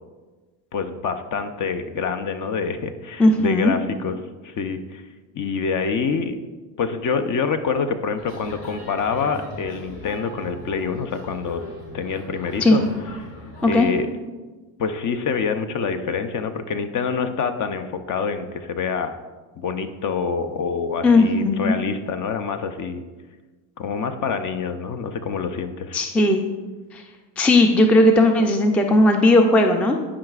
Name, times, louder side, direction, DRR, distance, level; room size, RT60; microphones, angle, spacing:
voice 1, 0.7-4.2 4.4-5.0 5.3-6.4 6.8-11.6 11.9-12.8 13.6-14.1 14.8-19.2 19.6-23.0 23.8-26.0, left 5 dB, 40° left, 8 dB, 0.6 m, -26 dB
voice 2, 3.2-3.7 12.6-12.8 13.6-13.9 21.0-21.8 25.9-26.4 26.9-27.0 27.4-30.0, left 1 dB, 5° left, 4 dB, 0.4 m, -16 dB
sound 1, 8.2-13.7, equal, 85° left, 2.2 m, -39 dB
11.5 x 4.9 x 2.4 m, 1.3 s
supercardioid pair, 90°, 48 cm